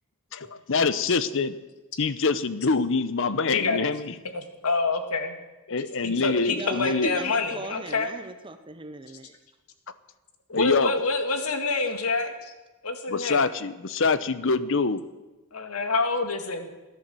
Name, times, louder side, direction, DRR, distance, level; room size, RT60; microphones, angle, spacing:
voice 1, 0.3-1.5 2.0-4.1 5.7-7.2 10.5-11.0 13.1-15.0, left 4 dB, 60° left, 14 dB, 0.8 m, -25 dB
voice 2, 3.5-3.8 4.3-5.4 6.0-8.1 10.5-12.5 12.8-13.5 15.5-16.7, left 3 dB, 85° left, 6 dB, 2.0 m, -27 dB
voice 3, 6.6-9.3, right 2 dB, 20° right, 8 dB, 0.8 m, -38 dB
16.5 x 10.5 x 7.7 m, 1.1 s
head